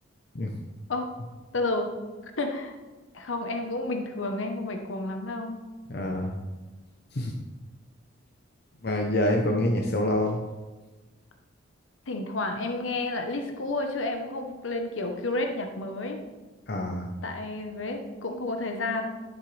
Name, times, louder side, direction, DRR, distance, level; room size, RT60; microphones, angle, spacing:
voice 1, 1.5-1.9 2.2-2.7 3.1-5.6 12.1-16.2 17.2-19.1, left 2 dB, 90° left, 4 dB, 1.0 m, -31 dB
voice 2, 5.9-6.4 7.1-7.3 8.8-10.4 16.7-17.1, left 1 dB, 55° left, 1 dB, 0.8 m, -26 dB
11.0 x 6.6 x 3.3 m, 1.2 s
head